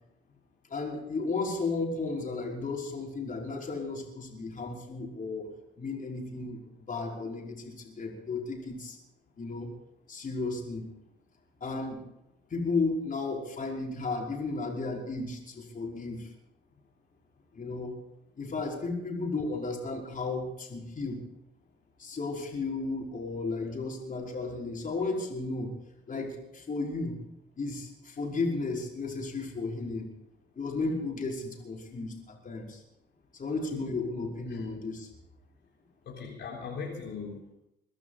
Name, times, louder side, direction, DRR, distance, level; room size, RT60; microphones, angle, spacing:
voice 1, 0.7-5.5 5.8-6.6 6.9-9.0 9.4-9.7 10.1-10.9 11.6-12.0 12.5-16.3 17.5-17.9 18.4-21.2 22.0-25.7 26.1-27.2 27.6-30.1 30.5-32.8 33.4-35.1, left 3 dB, 40° left, -1 dB, 5.5 m, -34 dB
voice 2, 36.1-37.5, left 5 dB, 65° left, -3 dB, 3.8 m, -39 dB
22.5 x 12.0 x 5.1 m, 0.86 s
cardioid pair, 90°, 20 cm